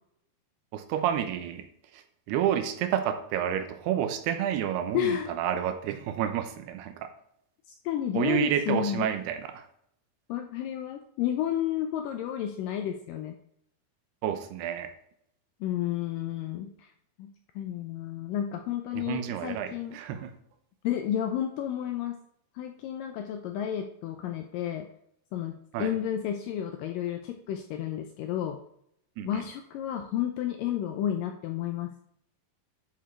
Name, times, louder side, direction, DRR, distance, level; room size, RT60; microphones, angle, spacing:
voice 1, 0.7-1.7 1.9-2.0 2.3-7.1 8.1-9.7 14.2-14.9 18.9-20.3 25.7-25.9 29.2-29.4, right 10 dB, 90° right, 8 dB, 2.9 m, -30 dB
voice 2, 4.9-5.3 7.7-9.1 10.3-13.4 15.6-16.9 17.2-20.0 20.8-22.2 22.6-24.9 25.3-28.6 29.2-31.9, left 10 dB, 90° left, 5 dB, 2.0 m, -31 dB
11.0 x 5.2 x 4.5 m, 0.72 s
omnidirectional pair, 4.6 m